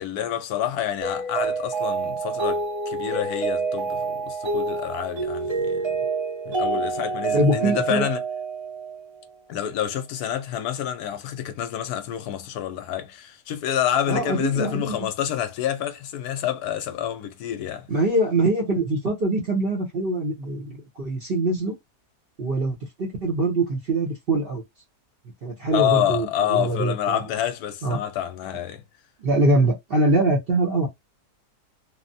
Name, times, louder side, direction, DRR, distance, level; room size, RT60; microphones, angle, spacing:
voice 1, 0.0-6.0 6.5-8.2 9.5-17.9 25.7-28.8, left 10 dB, 75° left, 1.0 m, -28 dB
Mallet percussion, 1.0-9.2, right 3 dB, 20° right, 0.9 m, -27 dB
voice 2, 7.3-8.1 14.1-15.1 17.9-21.8 22.4-24.6 25.4-27.2 27.8-28.0 29.2-30.9, right 2 dB, 50° right, 0.7 m, -23 dB
3.1 x 2.0 x 2.6 m
omnidirectional pair, 1.8 m